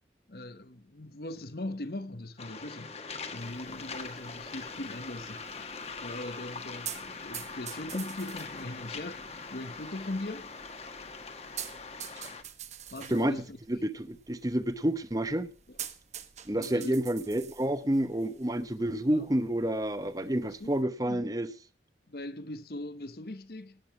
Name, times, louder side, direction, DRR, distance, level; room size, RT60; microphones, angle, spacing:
voice 1, 0.3-3.0 3.3-5.5 6.0-10.5 12.9-13.6 15.7-15.8 16.6-17.0 18.9-19.3 20.0-20.7 22.1-23.8, left 1 dB, 60° left, 1.1 m, -40 dB
Waves surf, 2.4-12.4, left 4 dB, 35° left, 1.5 m, -42 dB
sound 1, 3.4-20.8, right 10 dB, 40° right, 1.2 m, -48 dB
voice 2, 13.7-15.5 16.5-21.5, right 1 dB, 20° right, 0.9 m, -29 dB
18.0 x 7.9 x 5.0 m
head